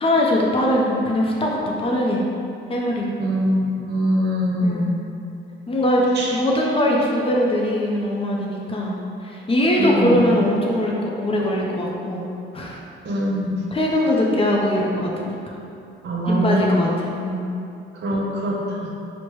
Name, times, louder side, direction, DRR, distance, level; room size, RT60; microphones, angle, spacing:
voice 1, 0.0-2.2 2.7-3.1 4.6-4.9 5.7-12.2 12.5-12.8 13.7-15.5 16.3-17.4, left 1 dB, 30° left, -2 dB, 0.6 m, -21 dB
voice 2, 3.2-4.9 6.1-6.4 9.8-10.3 13.0-13.6 16.0-16.7 18.0-18.9, equal, 60° right, -3 dB, 0.7 m, -23 dB
4.4 x 2.1 x 3.1 m, 2.7 s
cardioid pair, 90°, 20 cm